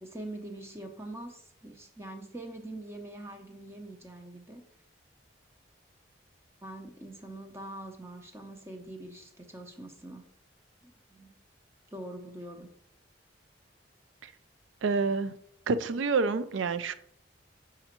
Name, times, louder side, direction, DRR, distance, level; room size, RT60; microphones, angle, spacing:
voice 1, 0.0-4.6 6.6-10.2 10.8-11.3 11.9-12.7, right 1 dB, 15° right, 3 dB, 0.6 m, -44 dB
voice 2, 14.8-15.3 15.7-16.9, right 4 dB, 80° right, 12 dB, 0.4 m, -27 dB
5.4 x 4.9 x 4.4 m, 0.71 s
head